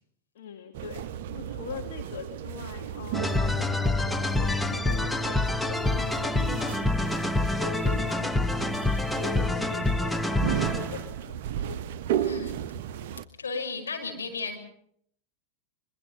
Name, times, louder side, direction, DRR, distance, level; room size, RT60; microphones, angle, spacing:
voice 1, 0.3-1.0 1.3-6.8 7.4-8.8 9.1-11.8, left 7 dB, 55° left, 4 dB, 2.2 m, -42 dB
sound 1, 0.7-13.3, right 10 dB, 50° right, 0.8 m, -35 dB
sound 2, 3.1-11.1, left 2 dB, 5° left, 0.8 m, -27 dB
voice 2, 12.1-12.6 13.4-14.6, left 4 dB, 70° left, 3 dB, 5.6 m, -34 dB
24.0 x 22.0 x 5.7 m, 0.67 s
figure-of-eight pair, 90°, 0 cm